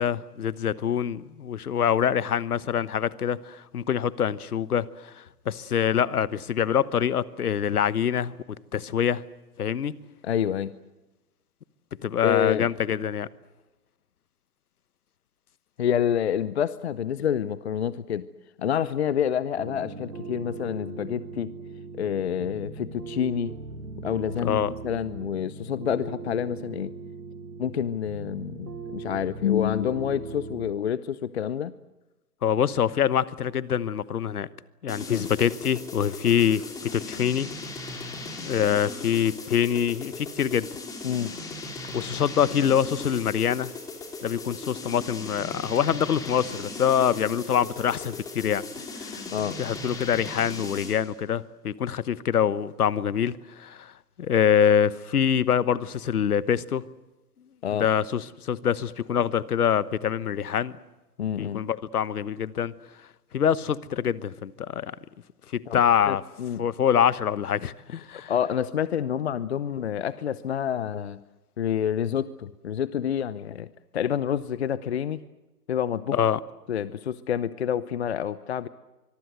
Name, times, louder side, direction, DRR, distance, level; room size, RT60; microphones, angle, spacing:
voice 1, 0.0-8.3 8.7-9.2 9.6-9.9 12.0-13.3 24.4-24.7 32.4-34.5 34.8-37.5 38.3-40.8 41.9-43.7 44.2-49.3 49.6-53.9 54.2-56.8 57.7-60.7 61.4-62.7 63.3-65.0 65.5-66.2 66.6-68.3 76.1-76.4, left 8 dB, 65° left, 18 dB, 1.3 m, -25 dB
voice 2, 10.2-10.7 12.2-12.7 15.8-18.3 18.6-21.5 22.0-23.5 24.0-26.9 27.6-31.7 35.1-35.3 41.0-41.3 49.3-49.6 57.6-57.9 61.2-61.6 65.7-65.8 66.1-66.6 68.3-71.2 71.6-73.7 73.9-75.2 75.7-76.2 76.7-78.7, left 9 dB, 40° left, 17 dB, 0.8 m, -28 dB
sound 1, 19.6-30.7, right 4 dB, 80° right, 2.9 m, -39 dB
sound 2, 34.9-51.1, left 3 dB, 5° left, 3.0 m, -38 dB
24.5 x 22.5 x 8.0 m, 1.1 s
hypercardioid pair, 145°, 49 cm